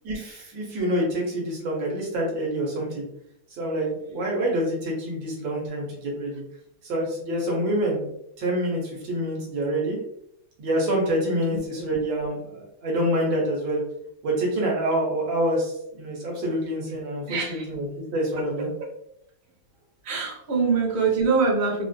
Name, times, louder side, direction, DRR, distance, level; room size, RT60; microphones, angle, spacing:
voice 1, 0.0-3.1 3.6-6.4 6.8-8.1 8.4-10.0 10.6-13.8 14.2-17.9 18.1-18.7, right 1 dB, 70° right, -2 dB, 1.6 m, -26 dB
voice 2, 17.3-17.6 18.4-18.7 20.0-21.9, right 4 dB, 40° right, -4 dB, 0.9 m, -24 dB
4.2 x 2.4 x 2.3 m, 0.75 s
omnidirectional pair, 2.2 m